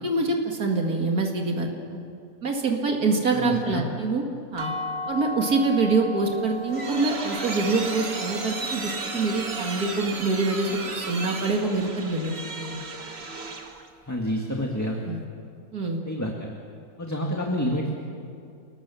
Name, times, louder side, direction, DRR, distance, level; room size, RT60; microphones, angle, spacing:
voice 1, 0.0-2.0 2.4-4.2 4.5-4.7 5.1-12.8 15.1-15.2 15.7-16.0, right 3 dB, 90° right, 1 dB, 2.7 m, -25 dB
voice 2, 3.3-3.8 14.1-15.0 16.0-16.5 17.0-18.0, equal, 10° left, 0 dB, 1.8 m, -28 dB
sound 1, 4.6-10.4, equal, 20° right, 1.4 m, -37 dB
sound 2, 6.3-13.9, right 3 dB, 45° right, 2.0 m, -34 dB
29.5 x 19.0 x 7.1 m, 2.5 s
omnidirectional pair, 1.5 m